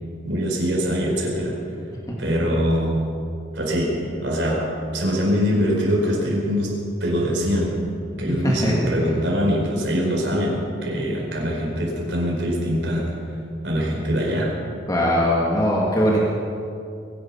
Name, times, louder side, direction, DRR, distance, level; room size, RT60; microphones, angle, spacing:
voice 1, 0.2-1.6 2.2-3.0 3.5-3.9 4.1-4.7 4.9-6.7 7.0-7.9 8.2-13.1 13.6-14.5, equal, 80° right, -2 dB, 4.6 m, -23 dB
voice 2, 14.9-16.2, equal, 20° left, -4 dB, 2.0 m, -20 dB
22.5 x 10.5 x 5.8 m, 2.5 s
head